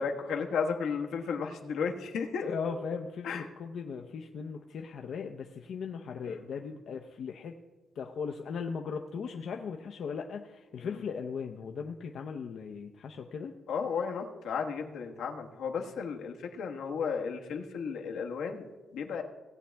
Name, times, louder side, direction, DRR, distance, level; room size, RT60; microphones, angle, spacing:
voice 1, 0.0-2.4 3.2-3.4 6.2-6.3 10.8-11.0 13.7-19.2, left 6 dB, 85° left, 2 dB, 1.3 m, -34 dB
voice 2, 2.4-7.5 8.0-13.5, left 6 dB, 70° left, 3 dB, 0.7 m, -38 dB
17.5 x 8.4 x 3.4 m, 1.2 s
cardioid pair, 95°, 0 cm